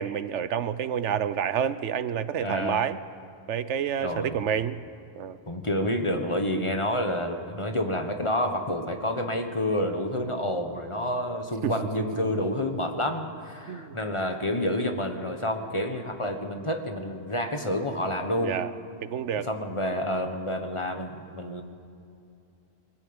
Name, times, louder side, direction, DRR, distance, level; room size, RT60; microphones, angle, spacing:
voice 1, 0.0-3.0 3.5-4.8 5.1-5.4 11.6-11.8 12.2-12.3 13.7-14.0 18.4-18.7 19.0-19.5, right 8 dB, 70° right, 14 dB, 1.0 m, -29 dB
voice 2, 2.4-2.8 4.0-4.4 5.5-18.5 19.4-21.6, left 1 dB, 25° left, 5 dB, 1.4 m, -29 dB
21.0 x 15.0 x 8.9 m, 2.5 s
omnidirectional pair, 1.3 m